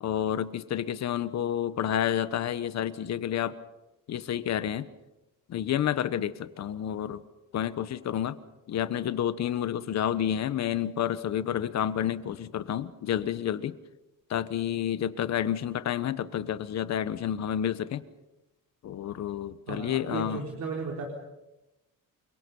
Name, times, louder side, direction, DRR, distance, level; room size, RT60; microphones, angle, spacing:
voice 1, 0.0-3.5 4.1-4.9 5.5-7.2 7.5-8.3 8.7-13.7 14.3-18.0 18.8-20.4, left 10 dB, 55° left, 13 dB, 1.2 m, -29 dB
voice 2, 19.7-21.0, right 4 dB, 55° right, 1 dB, 4.1 m, -35 dB
29.5 x 23.5 x 5.5 m, 0.97 s
cardioid pair, 175°, 33 cm